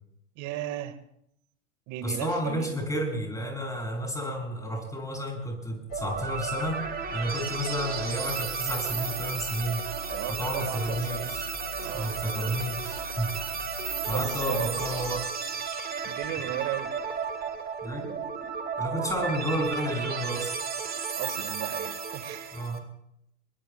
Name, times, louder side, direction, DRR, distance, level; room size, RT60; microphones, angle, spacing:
voice 1, 0.4-1.0 1.9-2.7 10.1-11.4 11.8-12.2 14.1-14.9 16.0-16.9 21.1-22.7, right 13 dB, 45° right, 11 dB, 1.9 m, -36 dB
voice 2, 2.0-6.8 7.1-9.9 10.3-11.5 11.9-13.8 14.1-15.3 17.8-18.2 18.8-20.6 22.5-22.9, equal, 10° left, 1 dB, 7.2 m, -31 dB
sound 1, 5.9-15.2, left 1 dB, 50° left, 2.0 m, -43 dB
sound 2, 5.9-22.8, right 6 dB, 25° right, 2.1 m, -34 dB
23.0 x 22.0 x 2.3 m, 0.76 s
hypercardioid pair, 95°, 40 cm